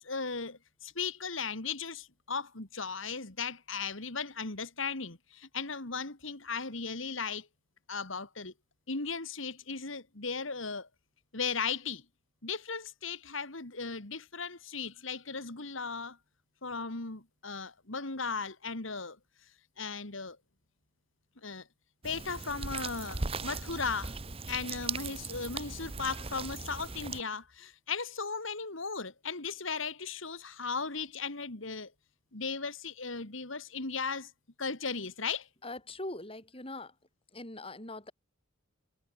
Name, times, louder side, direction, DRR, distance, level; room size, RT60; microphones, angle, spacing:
voice 1, 0.0-7.5 7.9-8.5 8.9-10.9 11.3-12.0 12.4-16.2 16.6-19.2 19.8-20.4 21.4-21.7 22.0-24.1 24.5-31.9 32.3-34.3 34.6-35.5, left 5 dB, 70° left, 2.6 m, -37 dB
sound 1, 22.0-27.2, right 4 dB, 30° right, 1.0 m, -38 dB
voice 2, 35.6-36.9 37.3-38.1, left 2 dB, 25° left, 6.6 m, -42 dB
head